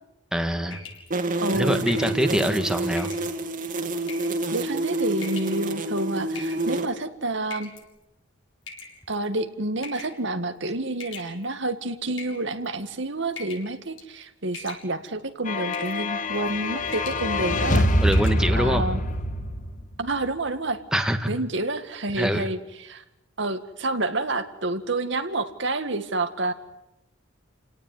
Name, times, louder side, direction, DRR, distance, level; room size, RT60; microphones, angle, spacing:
voice 1, 0.3-0.8 1.5-3.1 18.0-18.8 20.9-21.3 22.2-22.5, equal, 5° right, 6 dB, 1.8 m, -24 dB
sound 1, 0.7-1.1 1.9-2.2 3.0-3.3 4.0-4.4 5.2-5.6 6.4-6.8 7.5-7.8 8.7-9.2 9.8-10.2 11.0-11.7 12.1-12.8 13.4-13.7 14.0-14.2 14.5-15.1 15.7-16.0 16.3-16.6 16.9-17.2 17.6-17.7 18.1-18.4, left 5 dB, 75° left, 7.5 m, -40 dB
sound 2, 1.1-6.9, right 2 dB, 40° right, 2.0 m, -28 dB
voice 2, 1.4-1.8 4.5-7.7 9.1-17.9 18.5-19.0 20.0-20.8 21.3-23.0 23.4-26.5, right 2 dB, 65° right, 9 dB, 1.9 m, -28 dB
sound 3, 15.5-20.1, left 1 dB, 40° left, 1.8 m, -25 dB
29.5 x 18.5 x 9.6 m, 0.86 s
head